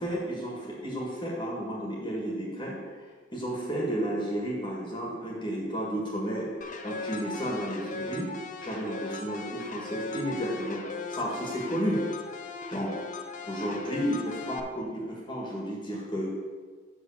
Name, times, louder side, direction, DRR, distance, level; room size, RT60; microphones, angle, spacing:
voice 1, 0.0-2.8 3.3-6.5 6.8-8.3 8.6-10.8 11.1-12.0 12.7-12.9 13.4-16.3, equal, 25° left, -3 dB, 1.7 m, -32 dB
sound 1, 6.6-14.6, left 3 dB, 40° left, 0.6 m, -39 dB
6.2 x 5.5 x 7.1 m, 1.5 s
head